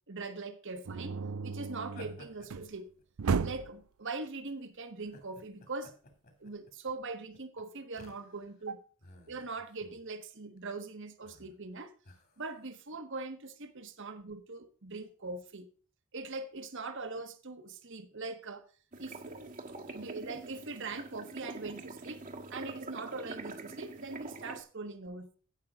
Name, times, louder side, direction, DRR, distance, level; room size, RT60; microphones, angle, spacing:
voice 1, 0.1-2.9 3.4-5.9 6.4-8.8 9.3-11.9 12.4-15.7 16.1-18.7 19.0-19.5 19.9-22.2 22.5-25.4, right 3 dB, 60° right, 1.5 m, -41 dB
sound 1, 0.8-2.7 3.2-3.8, right 5 dB, 75° right, 0.5 m, -34 dB
sound 2, 1.9-3.6 4.3-4.5 5.0-8.6 9.0-10.0 10.3-10.6 11.2-11.6 12.0-12.8, left 2 dB, 45° left, 3.0 m, -56 dB
sound 3, 18.9-24.6, right 3 dB, 40° right, 1.6 m, -45 dB
16.0 x 5.8 x 3.8 m
head